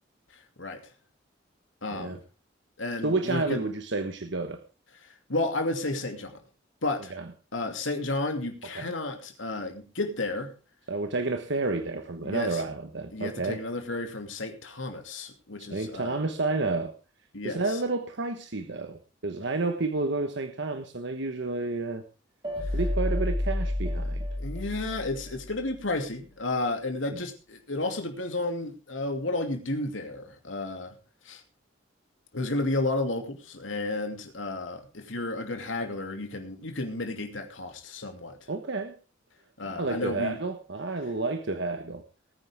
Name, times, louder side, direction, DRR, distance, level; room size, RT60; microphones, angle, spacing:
voice 1, 0.3-0.8 1.8-2.2 2.8-3.6 5.3-6.4 6.8-7.1 7.5-10.5 12.2-12.6 13.1-16.2 17.3-17.6 24.4-30.9 31.2-31.4 32.3-38.4 39.6-40.4, left 2 dB, 85° left, 5 dB, 2.5 m, -32 dB
voice 2, 3.0-4.6 7.1-7.3 8.7-9.0 10.9-13.6 15.6-16.9 17.4-22.0 22.7-24.3 38.5-38.9 39.8-42.0, right 3 dB, 65° right, 8 dB, 1.2 m, -30 dB
sound 1, 22.4-25.6, left 1 dB, 25° right, 5.4 m, -30 dB
19.5 x 9.6 x 3.5 m, 0.32 s
head